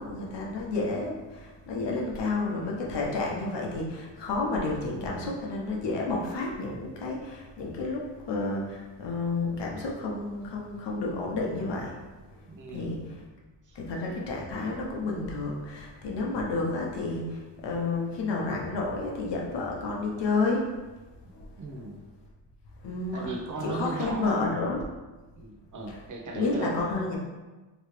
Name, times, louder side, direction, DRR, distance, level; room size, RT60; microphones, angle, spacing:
voice 1, 0.0-11.9 12.7-13.2 13.7-20.7 21.3-21.4 22.8-23.3 23.6-24.8 25.9-26.0 26.3-27.2, left 3 dB, 65° left, -2 dB, 0.9 m, -30 dB
voice 2, 12.4-13.1 13.7-13.8 21.6-22.0 23.1-24.5 25.4-26.7, right 3 dB, 40° right, 1 dB, 0.7 m, -37 dB
3.1 x 2.9 x 3.1 m, 1.2 s
cardioid pair, 95°, 46 cm